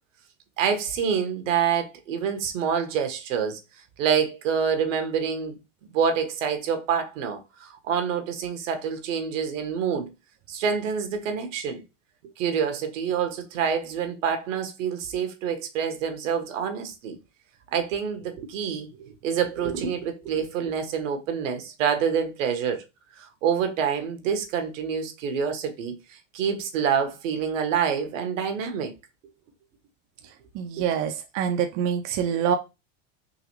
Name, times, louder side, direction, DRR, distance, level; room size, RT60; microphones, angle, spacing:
voice 1, 0.6-3.6 4.0-5.6 5.9-10.1 10.5-11.8 12.4-17.2 17.7-22.8 23.2-26.0 26.3-28.9 30.8-30.9, right 7 dB, 80° right, 1.1 m, -27 dB
voice 2, 30.5-32.6, right 8 dB, 50° right, 0.6 m, -25 dB
3.8 x 2.5 x 3.0 m
hypercardioid pair, 95°, 37 cm